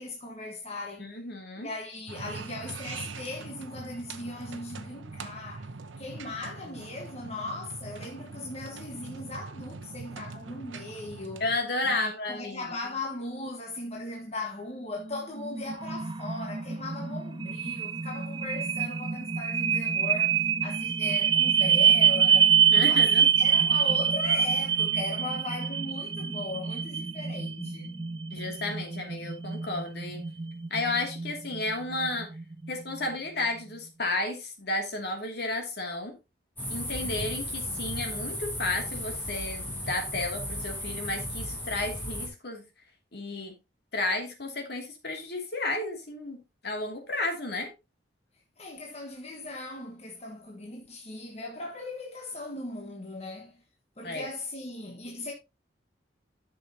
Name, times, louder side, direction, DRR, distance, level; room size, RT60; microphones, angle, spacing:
voice 1, 0.0-1.1 1.6-5.7 6.0-11.4 11.8-28.0 48.6-53.5 54.0-55.3, left 2 dB, 35° left, 1.4 m, -38 dB
voice 2, 1.0-1.7 6.6-6.7 11.4-12.6 22.7-23.3 28.3-30.3 30.7-32.3 32.7-36.2 36.7-42.7 43.1-43.5 43.9-47.7 54.0-54.3, left 2 dB, 60° left, 2.5 m, -32 dB
sound 1, 2.1-11.6, right 4 dB, 90° right, 0.8 m, -42 dB
sound 2, 15.0-33.1, right 7 dB, 25° right, 0.4 m, -26 dB
sound 3, 36.6-42.3, equal, 10° left, 3.3 m, -35 dB
12.0 x 6.6 x 2.8 m
head